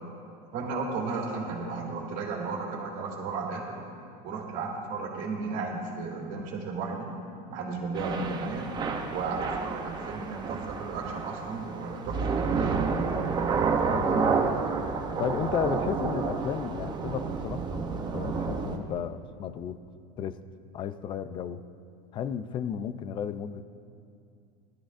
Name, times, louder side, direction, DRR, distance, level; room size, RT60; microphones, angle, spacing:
voice 1, 0.5-3.8 4.2-7.1 7.5-8.7 9.1-12.8, right 4 dB, 50° right, -4 dB, 2.4 m, -34 dB
Thunder / Rain, 8.0-18.8, right 5 dB, 20° right, 0.7 m, -30 dB
voice 2, 13.9-14.6 15.2-17.6 18.1-19.8 20.2-20.4 20.7-21.6 22.1-23.6, left 8 dB, 25° left, 14 dB, 0.3 m, -33 dB
18.5 x 12.5 x 2.5 m, 2.5 s
supercardioid pair, 150°, 20 cm